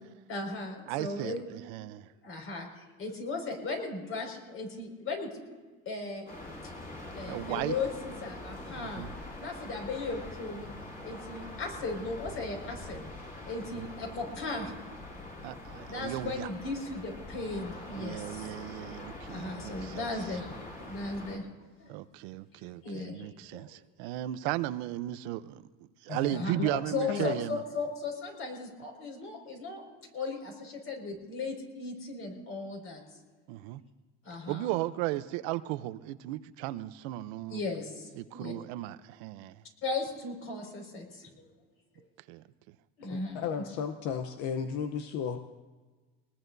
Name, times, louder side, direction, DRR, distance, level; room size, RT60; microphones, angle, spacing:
voice 1, 0.3-1.4 2.2-5.3 5.9-6.3 7.2-9.1 9.4-10.7 11.0-13.0 13.4-14.7 15.9-18.5 19.3-21.5 21.8-21.9 22.8-23.8 26.3-26.6 26.9-29.8 30.1-33.0 34.2-34.7 37.5-38.5 39.8-41.4 43.0-43.4, left 3 dB, 40° left, 1 dB, 5.4 m, -37 dB
voice 2, 0.9-2.1 7.3-7.7 8.8-9.1 15.4-16.5 18.0-20.1 21.9-25.6 26.0-27.6 33.5-33.8 34.5-37.6 38.2-39.6 42.3-42.4, right 16 dB, 85° right, 13 dB, 0.7 m, -35 dB
sound 1, 6.3-21.4, left 2 dB, 25° left, 5.3 m, -44 dB
voice 3, 26.1-26.8 27.1-27.3 43.0-45.4, left 7 dB, 65° left, 7 dB, 0.9 m, -34 dB
23.0 x 20.0 x 2.7 m, 1.3 s
cardioid pair, 135°, 32 cm